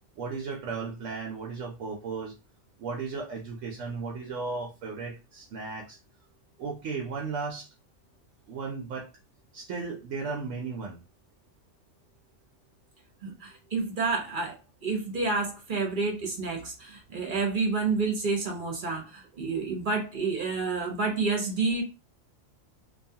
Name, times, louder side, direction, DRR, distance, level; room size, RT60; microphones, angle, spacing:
voice 1, 0.2-2.3 2.8-6.0 6.6-7.7 8.5-9.1 9.5-11.0, right 4 dB, 80° right, 0.9 m, -35 dB
voice 2, 13.2-21.8, right 4 dB, 45° right, 0.9 m, -29 dB
2.6 x 2.3 x 2.7 m
omnidirectional pair, 1.3 m